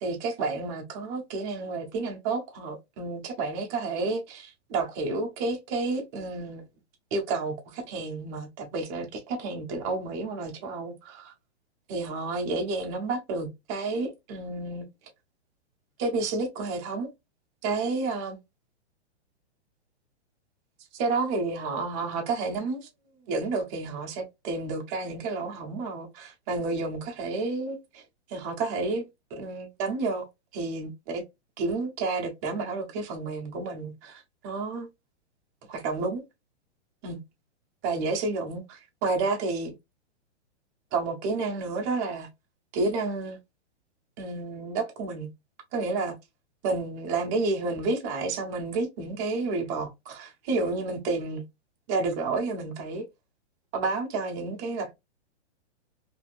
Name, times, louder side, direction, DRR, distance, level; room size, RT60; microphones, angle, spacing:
voice 1, 0.0-6.6 7.1-11.3 11.9-14.8 16.0-17.1 17.6-18.4 20.9-22.9 23.3-28.0 28.3-29.0 29.3-30.3 30.5-31.2 31.6-34.9 35.7-36.2 37.0-37.2 37.8-39.7 40.9-42.3 42.7-43.4 44.2-45.3 45.7-46.2 46.6-51.4 51.9-53.0 53.7-54.9, right 3 dB, 15° right, 0.3 m, -30 dB
3.0 x 2.5 x 2.4 m
hypercardioid pair, 150°, 34 cm